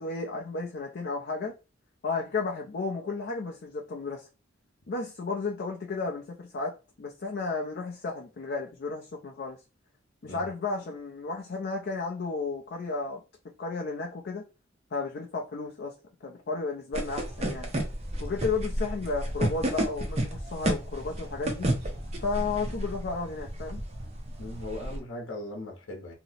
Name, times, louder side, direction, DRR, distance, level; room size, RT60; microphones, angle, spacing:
voice 1, 0.0-1.5 2.0-4.3 4.9-9.6 10.2-13.2 13.6-14.4 14.9-15.9 16.2-17.7 18.2-21.7 22.2-23.8, left 4 dB, 55° left, 0.5 m, -33 dB
sound 1, 16.9-25.0, right 1 dB, 35° right, 0.7 m, -32 dB
voice 2, 24.4-26.1, left 1 dB, 85° left, 0.8 m, -39 dB
2.8 x 2.0 x 4.0 m
head